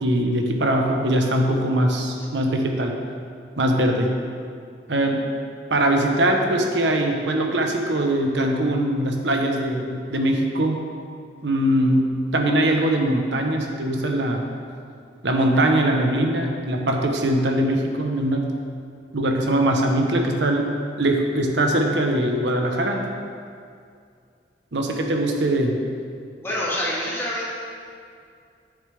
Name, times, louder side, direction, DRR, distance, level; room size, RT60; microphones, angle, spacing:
voice 1, 0.0-2.9 3.6-4.1 4.9-5.2 5.7-10.8 11.4-12.1 12.3-14.5 15.2-18.5 19.1-20.7 21.0-23.0 24.7-25.8, right 1 dB, 80° right, 2 dB, 1.1 m, -21 dB
voice 2, 26.4-27.5, left 1 dB, 15° left, -8 dB, 2.2 m, -26 dB
10.5 x 7.2 x 3.5 m, 2.3 s
head